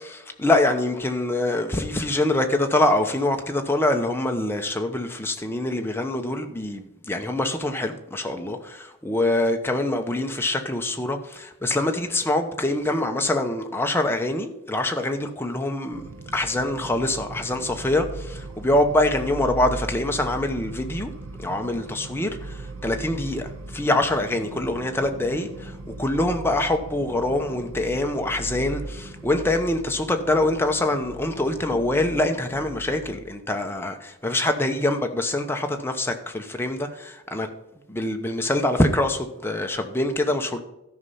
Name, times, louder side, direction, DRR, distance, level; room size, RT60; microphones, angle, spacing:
voice 1, 0.1-16.0 16.3-21.1 21.4-37.5 37.9-40.6, left 1 dB, 10° left, 0.8 m, -24 dB
sound 1, 15.9-33.2, right 2 dB, 65° right, 0.8 m, -38 dB
13.0 x 5.5 x 5.5 m
head